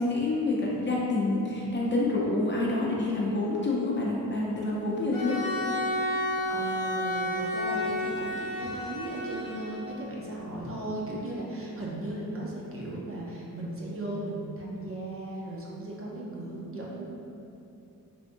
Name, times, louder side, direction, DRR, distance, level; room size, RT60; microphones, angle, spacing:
voice 1, 0.0-5.4, left 2 dB, 30° left, -5 dB, 0.6 m, -27 dB
Bowed string instrument, 5.1-10.1, left 1 dB, 65° left, 0.7 m, -31 dB
voice 2, 6.5-17.0, right 1 dB, 40° right, -4 dB, 0.7 m, -36 dB
3.5 x 2.5 x 2.6 m, 2.8 s
cardioid pair, 70°, 35 cm